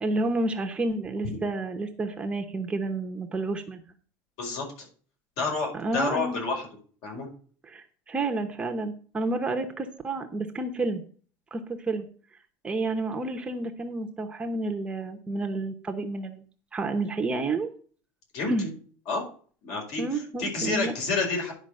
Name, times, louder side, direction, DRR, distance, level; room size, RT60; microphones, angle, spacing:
voice 1, 0.0-3.8 5.7-6.4 7.6-11.0 11.5-12.0 12.6-16.4 16.7-17.7 18.5-18.7 20.0-20.9, right 2 dB, 15° right, 5 dB, 0.9 m, -30 dB
voice 2, 4.4-4.9 5.4-6.7 7.0-7.3 18.3-18.7 19.1-19.2 19.6-21.5, left 3 dB, 60° left, 1 dB, 4.9 m, -29 dB
10.5 x 5.2 x 6.4 m, 0.44 s
cardioid pair, 165°, 7 cm